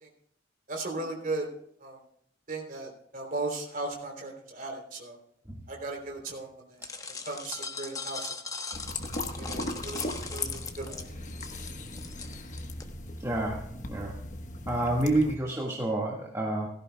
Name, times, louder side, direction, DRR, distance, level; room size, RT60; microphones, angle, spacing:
voice 1, 0.7-1.5 1.8-2.0 2.5-5.2 5.7-6.8 7.3-8.3 9.4-10.0 10.3-11.2, right 2 dB, 45° right, 1 dB, 3.4 m, -36 dB
sound 1, 6.8-12.8, left 4 dB, 20° left, 1.0 m, -39 dB
sound 2, 8.7-15.4, left 2 dB, 40° left, 1.2 m, -38 dB
voice 2, 13.2-13.6 13.9-14.1 14.7-16.7, right 1 dB, 15° right, -3 dB, 1.7 m, -28 dB
17.0 x 14.5 x 2.3 m, 0.71 s
head